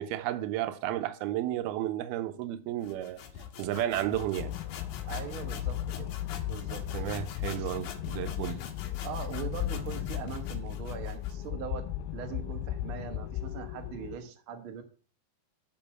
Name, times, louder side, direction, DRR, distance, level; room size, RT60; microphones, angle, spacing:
voice 1, 0.0-3.2 3.6-4.6 6.9-8.7, right 13 dB, 85° right, 2.6 m, -32 dB
sound 1, 2.8-11.4, left 7 dB, 65° left, 2.3 m, -44 dB
sound 2, 4.4-14.2, left 13 dB, 85° left, 2.4 m, -36 dB
voice 2, 5.1-6.2 6.5-6.8 7.6-7.7 9.0-11.9 12.1-14.8, right 8 dB, 60° right, 1.3 m, -41 dB
7.0 x 5.6 x 7.5 m
omnidirectional pair, 4.4 m